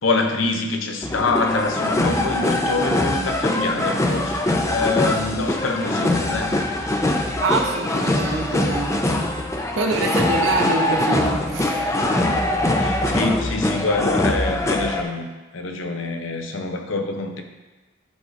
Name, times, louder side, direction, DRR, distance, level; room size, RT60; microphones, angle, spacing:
voice 1, 0.0-6.6 12.8-15.3 15.5-17.4, left 3 dB, 90° left, 5 dB, 0.7 m, -25 dB
sound 1, 1.0-15.0, left 1 dB, 15° left, 0.4 m, -22 dB
voice 2, 7.4-9.0 9.7-11.8, right 2 dB, 75° right, 3 dB, 0.8 m, -25 dB
11.0 x 3.8 x 2.5 m, 1.2 s
head